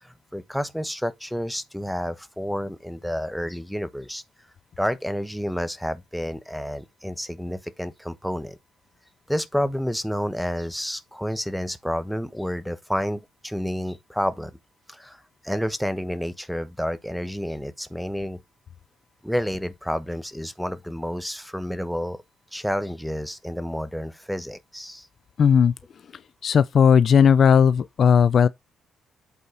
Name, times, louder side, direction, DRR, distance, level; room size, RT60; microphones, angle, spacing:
voice 1, 0.0-4.2 4.8-8.6 9.3-14.5 14.9-18.4 19.2-22.2 22.5-25.1, equal, ahead, 1.1 m, -30 dB
voice 2, 25.4-25.7 26.4-28.5, left 7 dB, 55° left, 0.5 m, -16 dB
8.2 x 4.2 x 4.8 m
cardioid pair, 90°, 0 cm